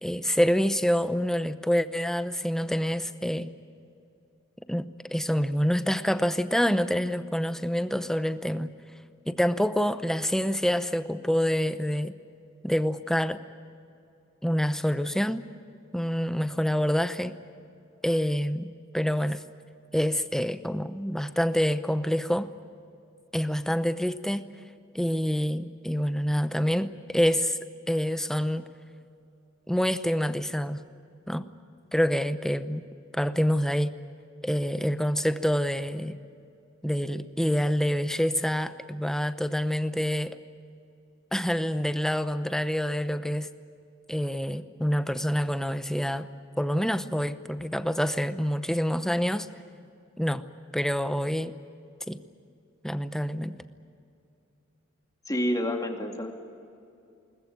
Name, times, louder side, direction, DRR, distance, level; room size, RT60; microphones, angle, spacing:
voice 1, 0.0-3.5 4.7-8.7 9.3-12.1 12.6-13.4 14.4-15.4 15.9-17.3 18.0-19.4 19.9-22.5 23.3-24.4 24.9-27.6 27.9-28.7 29.7-30.8 31.3-31.4 31.9-32.9 33.1-33.9 34.4-36.2 36.8-40.4 41.3-43.5 44.1-46.3 46.6-49.5 50.2-50.4 50.7-51.5 52.1-52.2 52.8-53.6, equal, 5° left, 11 dB, 0.8 m, -27 dB
voice 2, 55.3-56.3, equal, 20° left, 3 dB, 2.4 m, -28 dB
22.0 x 19.5 x 9.4 m, 2.6 s
head